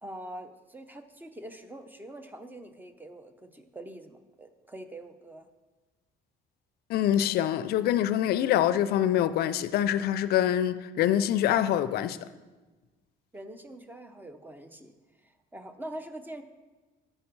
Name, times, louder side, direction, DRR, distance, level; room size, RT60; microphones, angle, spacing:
voice 1, 0.0-5.5 13.3-14.9 15.2-16.4, right 1 dB, 10° right, 0.6 m, -44 dB
voice 2, 6.9-12.2, left 11 dB, 70° left, 0.4 m, -25 dB
8.8 x 6.4 x 4.6 m
cardioid pair, 110°, 17 cm